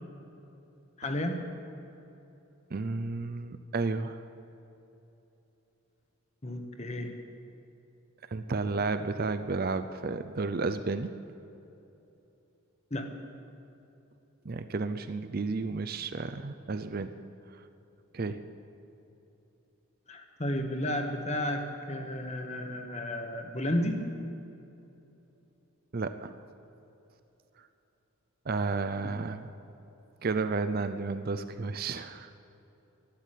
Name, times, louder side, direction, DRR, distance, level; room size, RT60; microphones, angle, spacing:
voice 1, 1.0-1.4 6.4-7.1 12.9-13.1 20.1-24.1 29.0-29.1, left 1 dB, 30° left, 5 dB, 1.2 m, -32 dB
voice 2, 2.7-4.2 8.3-11.1 14.4-17.1 18.1-18.4 25.9-26.4 28.5-29.5 30.2-32.3, right 3 dB, 40° right, 10 dB, 0.5 m, -32 dB
12.0 x 11.5 x 9.2 m, 2.9 s
head